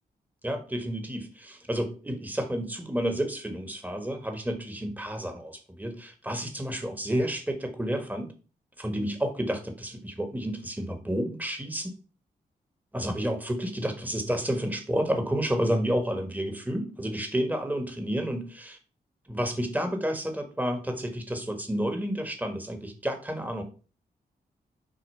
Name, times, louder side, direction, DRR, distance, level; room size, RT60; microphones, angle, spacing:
voice 1, 0.4-8.3 8.8-11.9 12.9-18.8 19.3-23.6, equal, 10° right, 5 dB, 1.6 m, -30 dB
6.6 x 2.7 x 5.6 m, 0.36 s
supercardioid pair, 45°, 19 cm